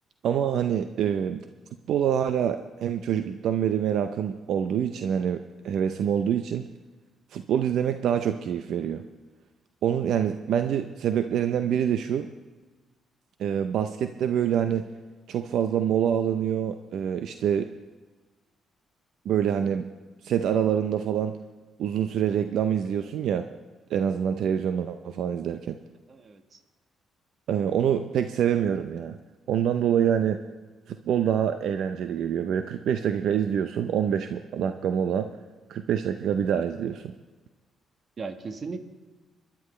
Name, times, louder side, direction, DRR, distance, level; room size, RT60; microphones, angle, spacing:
voice 1, 0.2-1.5 1.9-6.7 7.3-9.0 9.8-12.3 13.4-14.9 15.3-17.7 19.3-19.9 20.2-21.4 21.8-23.4 23.9-25.8 27.5-29.2 29.5-30.4 30.9-35.3 35.7-37.1, right 9 dB, 75° right, 9 dB, 0.6 m, -26 dB
voice 2, 26.1-26.6 38.2-38.8, right 4 dB, 45° right, 8 dB, 1.4 m, -37 dB
25.5 x 11.5 x 3.3 m, 1.3 s
cardioid pair, 90°, 0 cm